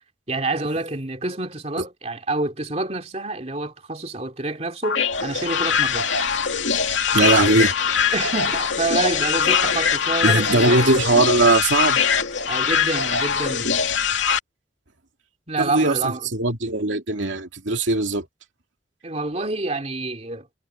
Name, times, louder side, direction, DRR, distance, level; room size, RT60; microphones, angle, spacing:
voice 1, 0.3-6.1 8.1-11.0 12.5-13.8 15.5-16.3 19.0-20.5, right 2 dB, 35° right, 2.8 m, -27 dB
sound 1, 4.8-14.4, left 6 dB, 85° left, 2.5 m, -22 dB
voice 2, 7.1-7.8 10.2-12.0 15.6-18.3, right 2 dB, 85° right, 2.5 m, -20 dB
head